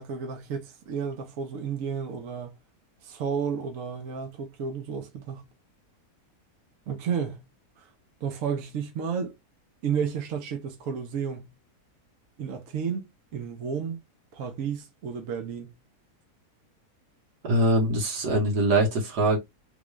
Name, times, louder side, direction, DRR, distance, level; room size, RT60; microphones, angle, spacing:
voice 1, 0.0-2.5 3.0-5.4 6.9-7.4 7.8-7.9 8.2-9.3 9.8-11.5 12.4-14.0 14.3-15.7, right 6 dB, 60° right, 1.1 m, -32 dB
voice 2, 17.4-19.4, right 1 dB, 80° right, 1.8 m, -23 dB
3.7 x 2.4 x 3.1 m
omnidirectional pair, 1.7 m